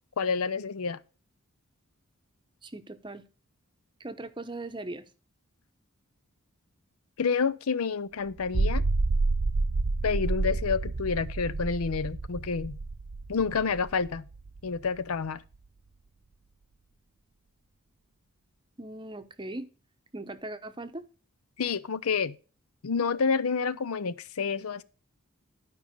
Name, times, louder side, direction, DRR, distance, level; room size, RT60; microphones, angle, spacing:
voice 1, 0.2-1.0 7.2-8.8 10.0-12.8 13.3-14.3 14.6-15.4 21.6-22.3 22.8-24.8, left 5 dB, 75° left, 0.6 m, -29 dB
voice 2, 2.6-3.2 4.0-5.0 18.8-19.7 20.1-21.0, right 2 dB, 20° right, 0.8 m, -39 dB
sound 1, 8.4-14.9, right 3 dB, 65° right, 0.6 m, -29 dB
12.0 x 5.4 x 5.1 m
head